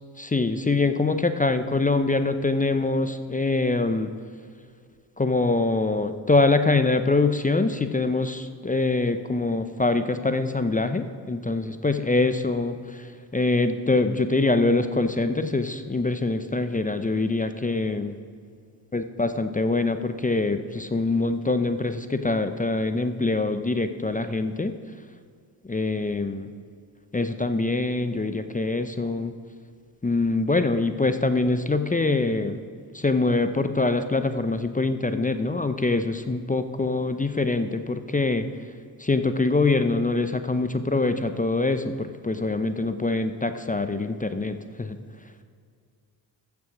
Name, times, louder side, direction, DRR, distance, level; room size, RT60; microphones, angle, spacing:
voice 1, 0.2-4.1 5.2-12.8 13.3-18.1 18.9-24.8 25.7-26.5 27.1-29.3 30.0-32.5 32.9-38.5 39.0-45.0, left 3 dB, 15° left, 9 dB, 0.7 m, -24 dB
14.0 x 7.0 x 6.1 m, 2.2 s
hypercardioid pair, 45°, 46 cm